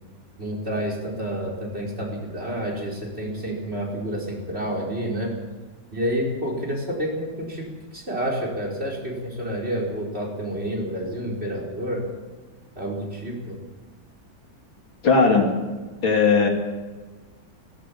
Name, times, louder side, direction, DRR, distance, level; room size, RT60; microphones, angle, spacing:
voice 1, 0.4-5.3 5.9-12.0 12.8-13.6, equal, 30° right, 0 dB, 5.4 m, -29 dB
voice 2, 15.0-15.6 16.0-16.5, left 4 dB, 90° left, 2 dB, 3.7 m, -18 dB
18.5 x 16.5 x 8.7 m, 1.3 s
omnidirectional pair, 2.1 m